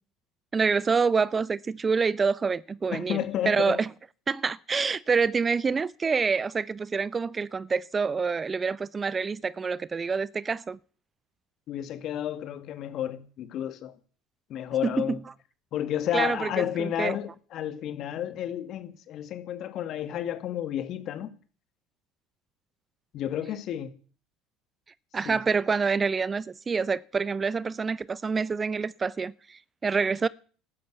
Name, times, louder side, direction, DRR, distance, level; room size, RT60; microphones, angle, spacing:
voice 1, 0.5-3.9 4.3-10.8 14.8-15.2 16.1-17.2 25.1-30.3, right 5 dB, 30° right, 0.7 m, -27 dB
voice 2, 2.9-3.8 11.7-13.9 14.5-15.2 15.7-21.3 23.1-23.9 25.3-25.4, left 11 dB, 55° left, 2.0 m, -31 dB
13.0 x 13.0 x 8.1 m
hypercardioid pair, 80°, 0 cm